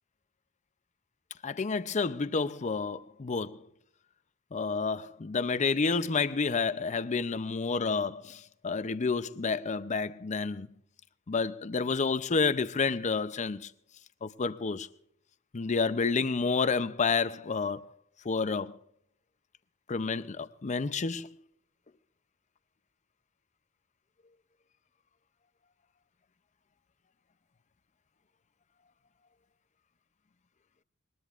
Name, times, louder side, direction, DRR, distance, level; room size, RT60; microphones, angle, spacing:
voice 1, 1.4-3.6 4.5-10.7 11.3-13.7 14.2-14.9 15.5-17.8 18.2-18.8 19.9-21.3, left 4 dB, 35° left, 0.5 m, -30 dB
21.5 x 20.5 x 2.5 m
head